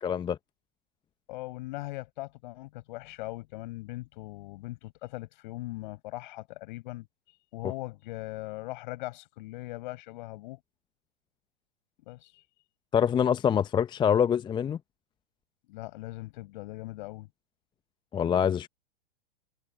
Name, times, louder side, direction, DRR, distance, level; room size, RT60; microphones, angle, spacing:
voice 1, 0.0-0.4 12.9-14.8 18.1-18.7, left 8 dB, 15° left, 0.7 m, -25 dB
voice 2, 1.3-7.1 7.5-10.6 12.1-12.4 15.7-17.3, left 19 dB, 50° left, 7.1 m, -40 dB
figure-of-eight pair, 105°, 31 cm